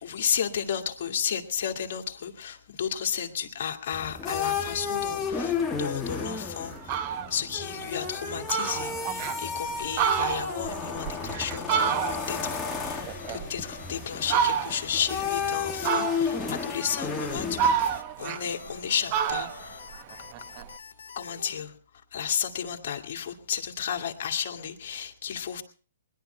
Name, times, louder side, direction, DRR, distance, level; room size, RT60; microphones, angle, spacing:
voice 1, 0.0-7.0 7.3-17.9 18.2-19.9 21.2-21.7 22.1-25.6, left 8 dB, 55° left, 3 dB, 2.1 m, -33 dB
sound 1, 3.9-18.0, left 5 dB, 10° left, 1.5 m, -33 dB
Fowl, 6.3-6.4 6.7-7.3 7.8-7.9 8.2-8.3 8.5-9.4 9.8-12.5 12.8-13.8 14.3-15.0 15.8-16.5 17.1-18.8 19.1-20.7, right 8 dB, 35° right, 0.9 m, -28 dB
sound 2, 11.8-21.6, left 5 dB, 75° left, 1.2 m, -46 dB
20.5 x 11.5 x 4.4 m, 0.39 s
hypercardioid pair, 135°, 0 cm